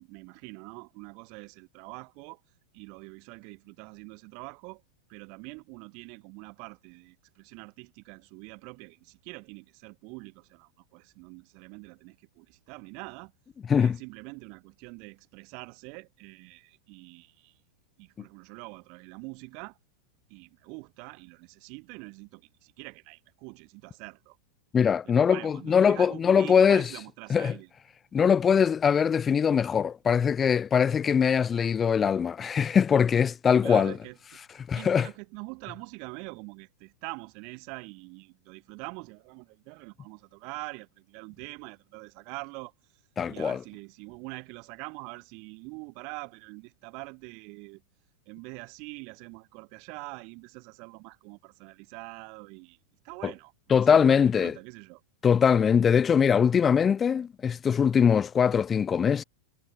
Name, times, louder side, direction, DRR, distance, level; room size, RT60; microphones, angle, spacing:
voice 1, 0.0-2.4 2.7-4.8 5.1-13.3 13.8-17.6 18.0-19.8 20.3-24.4 25.0-27.7 33.6-34.2 34.7-42.9 43.3-47.8 48.3-52.8 53.0-55.0, right 33 dB, 45° right, 5.8 m, -44 dB
voice 2, 24.7-26.9 27.3-27.5 28.1-33.9 34.7-35.1 43.2-43.6 53.2-53.3 53.7-54.5 55.2-59.2, left 7 dB, 20° left, 0.3 m, -22 dB
figure-of-eight pair, 90°, 0 cm